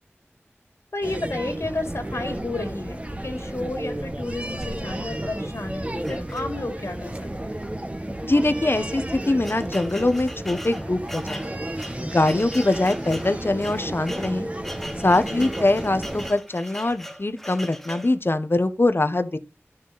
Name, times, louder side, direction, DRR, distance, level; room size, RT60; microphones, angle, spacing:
voice 1, 0.9-7.2 7.4-7.6 15.1-15.5, left 2 dB, 75° left, 2.8 m, -32 dB
sound 1, 1.0-16.3, right 1 dB, 25° right, 1.7 m, -32 dB
sound 2, 6.0-6.9 7.6-7.8 8.0-8.1 8.8-18.2, equal, 5° left, 1.2 m, -40 dB
voice 2, 8.2-11.4 12.0-14.5 15.0-19.4, left 2 dB, 50° left, 1.3 m, -23 dB
12.0 x 6.6 x 4.2 m
wide cardioid pair, 50°, 5 cm